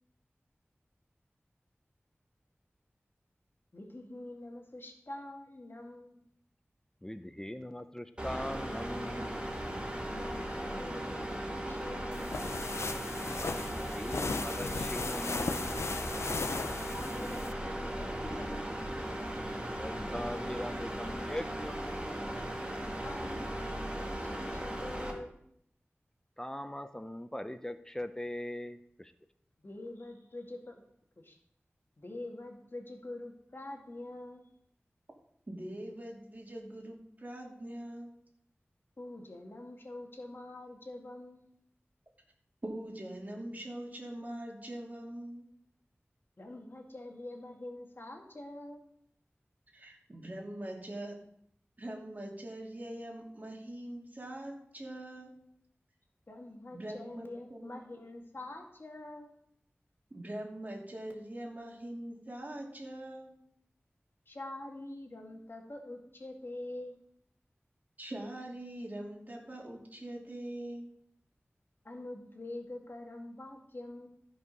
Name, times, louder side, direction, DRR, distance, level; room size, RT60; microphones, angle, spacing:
voice 1, 3.7-6.2 10.1-12.5 16.4-18.9 23.0-25.4 29.6-30.8 31.2-31.4 32.0-34.5 39.0-41.5 46.4-48.8 56.3-59.3 64.3-66.9 71.8-74.1, left 1 dB, 55° left, 1 dB, 2.1 m, -45 dB
voice 2, 7.0-9.3 13.4-15.8 19.7-22.2 26.4-29.1, left 1 dB, 15° left, 10 dB, 0.6 m, -41 dB
sound 1, 8.2-25.1, right 1 dB, 25° right, 2.2 m, -37 dB
sound 2, 12.1-17.5, left 4 dB, 90° left, 0.5 m, -37 dB
voice 3, 35.5-38.2 42.6-45.5 49.7-51.2 51.8-55.5 56.7-57.7 60.1-63.5 68.0-70.9, right 1 dB, 40° right, -2 dB, 2.9 m, -43 dB
14.5 x 5.5 x 5.4 m, 0.71 s
wide cardioid pair, 55°, 4 cm